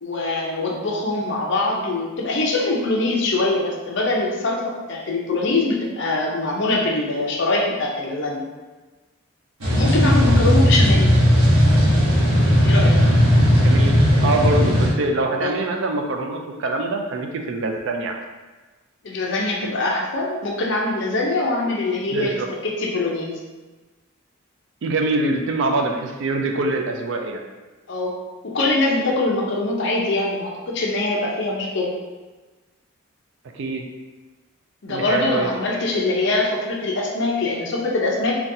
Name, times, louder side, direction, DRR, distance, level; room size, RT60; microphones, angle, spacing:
voice 1, 0.0-8.4 9.7-11.1 12.6-13.0 15.4-15.6 19.0-23.3 27.9-28.2 28.4-31.9 34.8-38.3, left 2 dB, 55° left, -2 dB, 0.6 m, -23 dB
sound 1, 9.6-14.9, equal, 85° right, 1.0 m, -16 dB
voice 2, 13.6-18.2 22.1-22.5 24.8-27.4 33.5-33.8 34.9-35.5, right 2 dB, 55° right, 3 dB, 0.3 m, -24 dB
3.9 x 2.2 x 2.7 m, 1.2 s
head